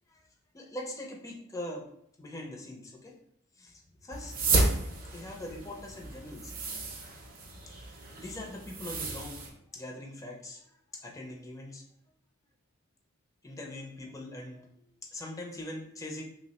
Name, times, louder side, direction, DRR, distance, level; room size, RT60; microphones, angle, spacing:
voice 1, 0.5-1.9 2.2-3.1 3.6-4.3 5.1-6.7 7.7-11.8 13.4-16.2, left 1 dB, 15° left, 0 dB, 0.4 m, -42 dB
sound 1, 4.1-9.5, right 2 dB, 40° right, 0.5 m, -32 dB
3.1 x 2.1 x 3.9 m, 0.71 s
head